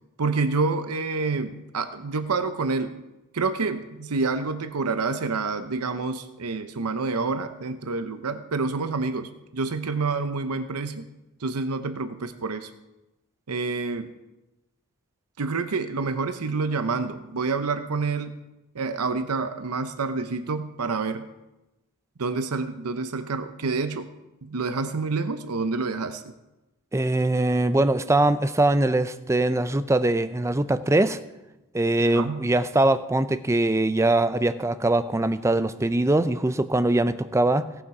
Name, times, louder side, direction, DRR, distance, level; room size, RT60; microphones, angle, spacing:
voice 1, 0.2-3.0 3.3-11.1 11.4-12.7 13.5-14.1 15.4-18.4 18.7-21.2 22.2-24.1 24.4-26.3 32.1-32.4, right 4 dB, 85° right, 9 dB, 0.7 m, -28 dB
voice 2, 26.9-31.2 31.7-37.7, right 2 dB, 15° right, 12 dB, 0.4 m, -22 dB
17.5 x 7.4 x 4.9 m, 0.98 s
head